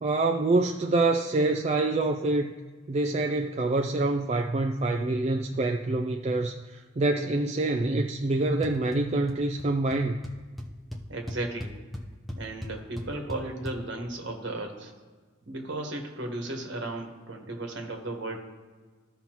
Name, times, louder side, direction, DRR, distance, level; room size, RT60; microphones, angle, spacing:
voice 1, 0.0-2.5 2.9-6.5 7.0-10.2, right 2 dB, 35° right, 4 dB, 0.4 m, -26 dB
sound 1, 8.6-9.0 9.3-9.7 9.9-10.0 10.2-13.7, equal, ahead, 0.7 m, -38 dB
voice 2, 11.1-11.7 12.3-14.9 15.5-18.4, right 2 dB, 65° right, 2 dB, 1.4 m, -35 dB
14.0 x 5.4 x 3.0 m, 1.4 s
head